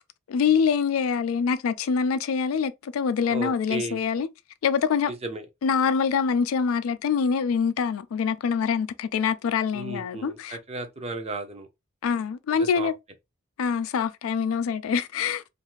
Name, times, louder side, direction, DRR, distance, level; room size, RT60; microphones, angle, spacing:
voice 1, 0.3-4.3 4.6-5.1 5.6-10.6 12.0-12.9 13.6-15.5, left 6 dB, 85° left, 0.3 m, -25 dB
voice 2, 3.3-4.1 5.1-5.5 9.7-11.7 12.6-12.9, right 2 dB, 30° right, 0.6 m, -34 dB
2.5 x 2.4 x 3.0 m
head